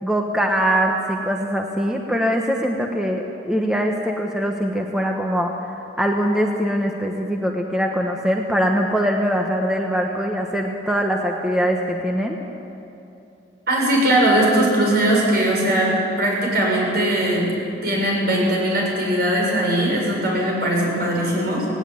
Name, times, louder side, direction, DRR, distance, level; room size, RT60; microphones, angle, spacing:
voice 1, 0.0-12.4, equal, 5° right, 1 dB, 1.1 m, -22 dB
voice 2, 13.7-17.5 17.8-21.7, right 1 dB, 55° right, -2 dB, 7.1 m, -20 dB
18.5 x 18.0 x 9.4 m, 2.8 s
head